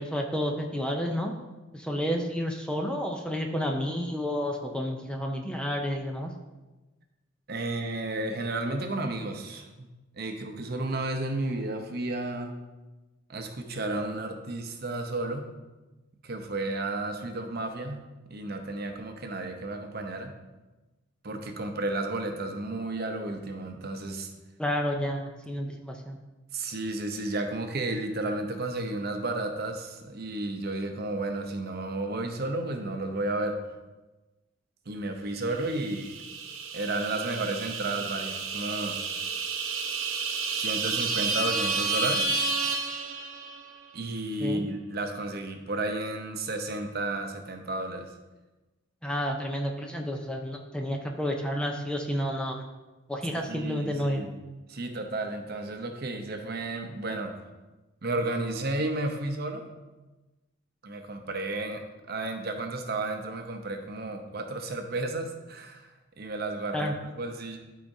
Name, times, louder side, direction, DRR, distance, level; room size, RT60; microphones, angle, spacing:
voice 1, 0.0-1.3 1.7-6.3 24.6-26.2 44.4-44.7 49.0-52.6 53.1-54.3 66.7-66.9, equal, 5° left, 2 dB, 0.5 m, -30 dB
voice 2, 7.5-9.9 10.1-12.5 13.3-15.5 16.2-18.0 18.3-20.3 21.2-24.3 26.5-33.6 34.9-36.1 36.7-39.0 40.5-42.4 43.9-48.1 53.4-54.3 54.7-57.3 58.0-59.7 60.8-65.9 66.2-67.6, right 2 dB, 50° right, 5 dB, 0.8 m, -32 dB
sound 1, 35.7-43.7, right 4 dB, 85° right, 0.8 m, -31 dB
12.0 x 4.9 x 2.7 m, 1.1 s
head